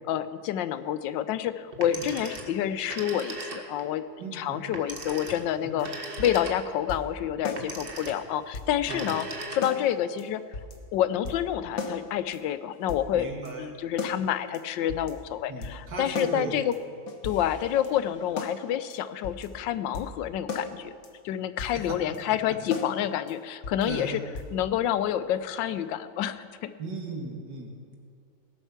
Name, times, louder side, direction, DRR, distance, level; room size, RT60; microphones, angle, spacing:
voice 1, 0.1-4.0 4.3-10.4 10.9-13.3 13.6-16.8 17.2-20.9 21.2-24.2 24.5-26.7, left 10 dB, 85° left, 13 dB, 1.3 m, -28 dB
Telephone, 1.7-3.9 4.7-6.9 7.6-8.4 8.8-9.9, right 2 dB, 35° right, 1.2 m, -38 dB
voice 2, 4.2-4.6 5.6-5.8 8.9-9.1 13.1-13.6 15.5-16.5 21.7-22.0 23.8-24.2 26.8-27.7, right 3 dB, 70° right, 1 dB, 2.4 m, -37 dB
sound 1, 5.8-5.9 6.2-6.4 6.9-7.1 7.4-7.6 8.0-8.1 8.5-8.7 9.1-9.2 9.6-9.8 10.2-10.3 10.5-10.8 11.2-11.5 11.8-12.0 12.3-12.4 12.9-13.1 13.4-13.5 14.0-14.2 14.5-14.6 14.9-15.1 15.6-15.8 16.1-16.4 16.7-16.8 17.1-18.6 18.9-19.0 19.2-19.5 19.9-20.2 20.5-20.7 21.0-21.1 21.6-21.8 22.1-22.2 22.7-22.9 23.3-23.4 23.6-23.9 24.3-24.5, left 4 dB, 55° left, 1.5 m, -35 dB
18.5 x 8.0 x 5.9 m, 2.3 s
omnidirectional pair, 1.9 m